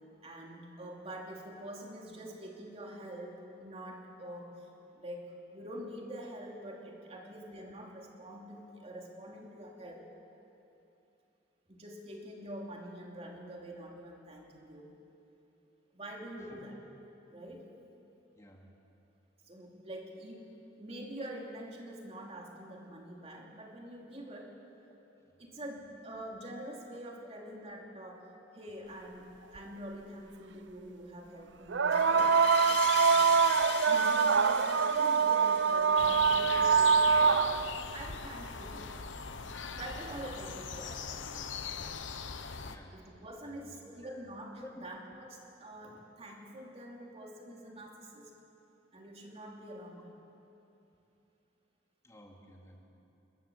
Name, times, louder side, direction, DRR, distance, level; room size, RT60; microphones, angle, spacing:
voice 1, 0.2-4.7 4.9-10.1 11.7-15.0 15.9-16.8 17.3-17.7 19.5-24.5 25.4-28.3 28.5-32.4 32.9-33.2 33.8-37.6 37.9-38.9 39.7-41.3 42.9-48.3 48.9-50.2, right 1 dB, 35° right, 0 dB, 3.0 m, -46 dB
voice 2, 18.4-18.7 41.4-41.8 42.6-43.0 43.4-44.2 44.6-44.9 46.2-46.4 47.2-47.3 52.0-52.8, left 1 dB, 15° left, 0 dB, 2.5 m, -53 dB
sound 1, 29.6-29.7 31.7-37.9 39.3-39.4 40.3-40.4, right 5 dB, 70° right, 0.6 m, -25 dB
sound 2, 31.9-37.2, left 4 dB, 65° left, 2.3 m, -39 dB
sound 3, 36.0-42.8, left 6 dB, 85° left, 1.1 m, -40 dB
30.0 x 13.5 x 7.4 m, 2.9 s
head